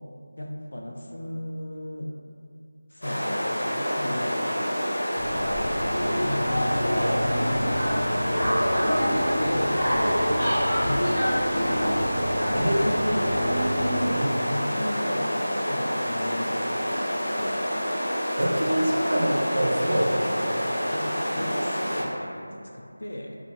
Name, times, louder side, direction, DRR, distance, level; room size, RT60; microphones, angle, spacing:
voice 1, 0.4-2.1 2.9-4.6 6.2-7.7 8.8-10.3 10.8-11.5 12.5-13.6 14.5-17.8 20.9-23.4, left 1 dB, 55° left, 0 dB, 0.3 m, -35 dB
sound 1, 3.0-22.0, equal, 80° left, 0.8 m, -28 dB
sound 2, 5.1-14.1, equal, 5° left, 0.6 m, -27 dB
voice 2, 18.4-20.6, right 1 dB, 45° right, -3 dB, 0.4 m, -26 dB
2.7 x 2.0 x 2.9 m, 2.4 s
figure-of-eight pair, 180°, 0 cm